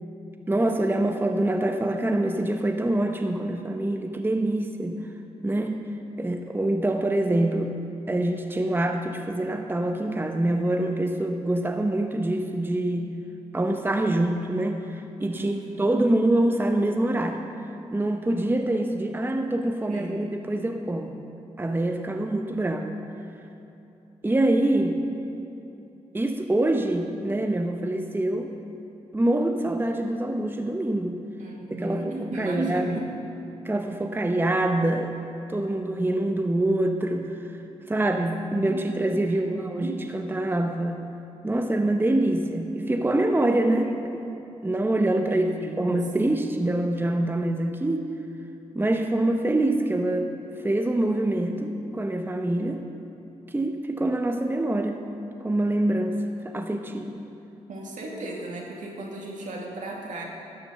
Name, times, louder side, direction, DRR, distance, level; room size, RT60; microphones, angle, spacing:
voice 1, 0.5-5.0 5.4-5.8 6.2-7.7 8.1-13.1 13.5-17.4 17.9-21.2 21.6-23.0 24.2-25.0 26.1-28.5 29.1-31.2 31.7-33.0 33.6-35.2 35.5-37.6 37.9-41.1 41.4-44.2 44.6-45.5 45.8-48.1 48.7-50.3 50.6-52.8 53.5-55.0 55.4-56.2 56.4-57.2, right 1 dB, 15° right, 4 dB, 0.9 m, -25 dB
voice 2, 15.3-16.1 19.9-20.7 31.4-33.1 38.5-40.0 45.3-46.5 57.7-60.2, right 1 dB, 70° right, -2 dB, 2.3 m, -35 dB
12.5 x 6.9 x 6.4 m, 2.9 s
supercardioid pair, 45°, 14 cm